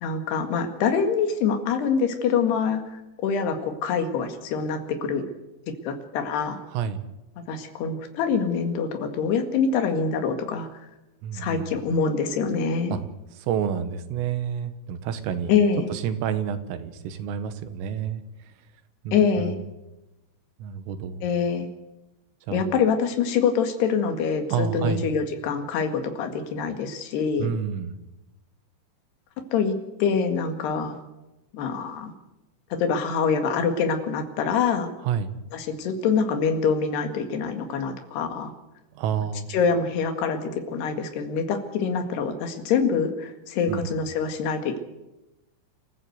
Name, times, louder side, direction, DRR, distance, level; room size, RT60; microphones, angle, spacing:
voice 1, 0.0-5.2 5.8-6.6 7.5-10.7 11.3-13.0 15.5-15.9 19.1-19.6 21.2-21.7 22.5-27.5 29.5-31.0 31.5-32.1 32.8-34.9 35.5-38.5 39.5-44.8, left 6 dB, 60° left, 6 dB, 3.7 m, -25 dB
voice 2, 6.7-7.0 11.2-11.7 12.9-13.0 13.4-15.5 15.9-18.2 19.1-19.6 20.6-21.2 22.5-22.6 24.5-25.1 27.4-27.9 35.0-35.3 39.0-39.5 43.7-43.9, right 8 dB, 85° right, 10 dB, 4.0 m, -29 dB
28.0 x 14.5 x 8.1 m, 0.99 s
omnidirectional pair, 5.8 m